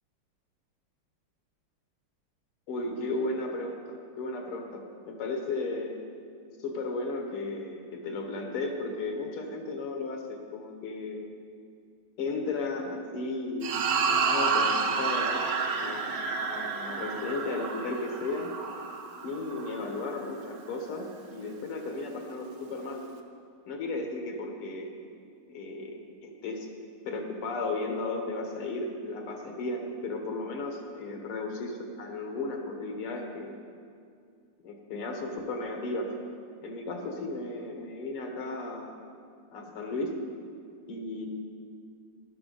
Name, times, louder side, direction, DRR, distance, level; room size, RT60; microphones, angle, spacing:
voice 1, 2.7-6.0 6.6-11.2 12.2-13.8 14.0-15.5 15.8-18.5 19.2-23.0 23.7-24.9 25.5-26.7 27.1-33.5 34.6-36.1 36.6-39.0 39.5-40.2 40.9-41.3, left 2 dB, 90° left, 3 dB, 2.2 m, -35 dB
sound 1, 13.6-20.2, right 5 dB, 55° right, 1.0 m, -30 dB
14.0 x 11.5 x 4.0 m, 2.3 s
omnidirectional pair, 2.4 m